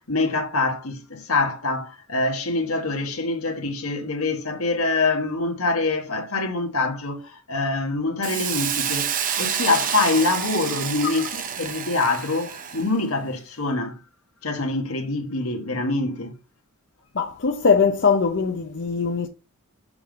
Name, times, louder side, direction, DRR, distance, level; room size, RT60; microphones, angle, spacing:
voice 1, 0.1-14.0 14.4-16.3, left 3 dB, 75° left, 1.6 m, -25 dB
Hiss, 8.2-12.9, right 8 dB, 35° right, 0.6 m, -28 dB
voice 2, 17.1-19.3, left 5 dB, 55° left, 0.7 m, -21 dB
6.9 x 3.7 x 5.2 m
head